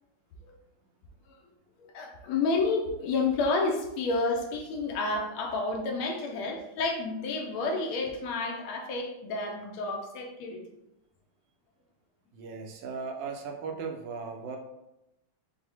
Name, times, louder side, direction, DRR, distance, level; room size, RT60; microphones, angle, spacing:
voice 1, 1.8-10.6, left 3 dB, 80° left, 2 dB, 1.6 m, -30 dB
voice 2, 12.3-14.6, right 5 dB, 70° right, 3 dB, 1.2 m, -37 dB
6.0 x 2.1 x 3.4 m, 0.89 s
omnidirectional pair, 2.3 m